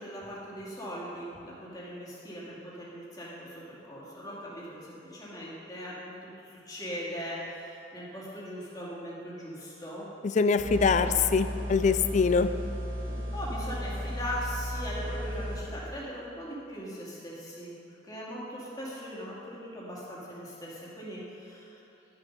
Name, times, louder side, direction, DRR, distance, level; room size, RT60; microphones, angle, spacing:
voice 1, 0.0-6.0 6.2-10.1 11.0-11.3 13.1-17.8 18.0-21.8, equal, 20° left, -7 dB, 2.4 m, -40 dB
voice 2, 10.3-12.5, left 5 dB, 40° left, 10 dB, 0.4 m, -24 dB
sound 1, 10.6-15.6, equal, 85° right, 2.4 m, -35 dB
12.0 x 6.7 x 5.4 m, 2.7 s
head